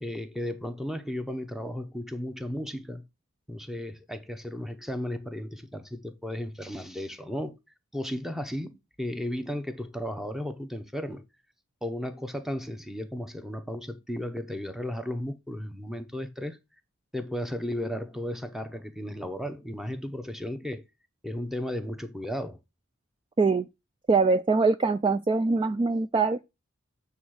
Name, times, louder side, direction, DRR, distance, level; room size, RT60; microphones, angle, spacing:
voice 1, 0.0-3.0 3.5-7.6 7.9-11.2 11.8-16.6 17.1-20.8 21.2-22.6, left 1 dB, ahead, 0.8 m, -34 dB
voice 2, 24.1-26.4, right 4 dB, 25° right, 0.3 m, -23 dB
8.2 x 3.4 x 6.3 m
head